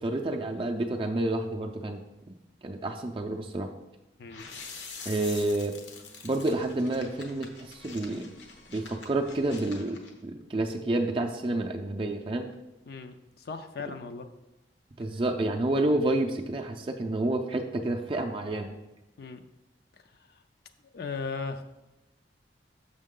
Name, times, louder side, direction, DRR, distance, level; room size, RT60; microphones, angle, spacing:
voice 1, 0.0-2.0 2.3-2.4 2.6-3.7 5.1-5.7 6.2-8.3 8.7-12.5 15.0-18.8, right 2 dB, 30° right, 3 dB, 0.4 m, -29 dB
voice 2, 4.2-4.5 12.9-14.3 19.2-19.4 20.9-21.6, left 4 dB, 55° left, 7 dB, 0.4 m, -37 dB
sound 1, 4.3-10.1, left 4 dB, 80° left, 1.0 m, -45 dB
6.5 x 6.1 x 3.7 m, 0.97 s
head